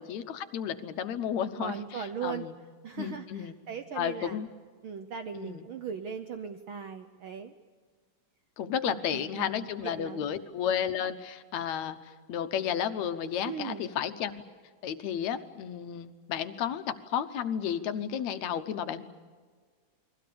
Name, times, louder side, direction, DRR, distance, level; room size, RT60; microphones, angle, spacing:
voice 1, 0.0-2.5 3.0-3.6 4.0-4.5 5.3-5.6 8.6-14.3 14.8-19.0, left 9 dB, 75° left, 9 dB, 2.3 m, -32 dB
voice 2, 1.6-2.5 2.8-4.4 4.8-7.5 8.9-10.2 13.4-13.9, right 7 dB, 65° right, 8 dB, 1.3 m, -39 dB
29.0 x 22.0 x 6.9 m, 1.5 s
omnidirectional pair, 3.3 m